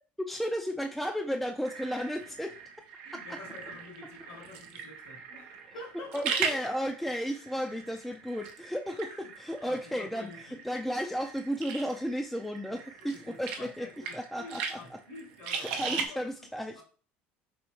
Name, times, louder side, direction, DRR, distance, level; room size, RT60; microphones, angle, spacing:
voice 1, 0.2-2.5 6.1-10.3 10.6-13.9 14.1-14.8 15.6-16.8, equal, ahead, 2 dB, 0.3 m, -33 dB
sound 1, 1.6-16.1, right 6 dB, 80° right, 0.6 m, -39 dB
voice 2, 3.0-6.8 9.2-9.3 9.6-10.6 13.0-16.5 16.7-16.8, left 3 dB, 75° left, 1 dB, 1.4 m, -48 dB
4.2 x 2.7 x 3.0 m, 0.42 s
supercardioid pair, 85°, 5 cm